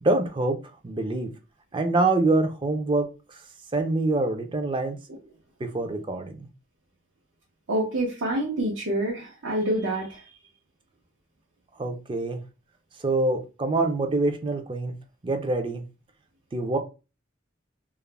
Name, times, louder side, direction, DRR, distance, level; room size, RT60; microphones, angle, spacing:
voice 1, 0.0-0.6 0.8-1.3 1.7-3.4 3.7-5.0 5.6-6.5 11.8-12.4 13.0-14.9 15.2-15.8 16.5-16.8, right 2 dB, 25° right, 7 dB, 0.4 m, -25 dB
voice 2, 7.7-10.3, right 1 dB, 85° right, -4 dB, 0.7 m, -27 dB
2.4 x 2.0 x 3.1 m, 0.30 s
head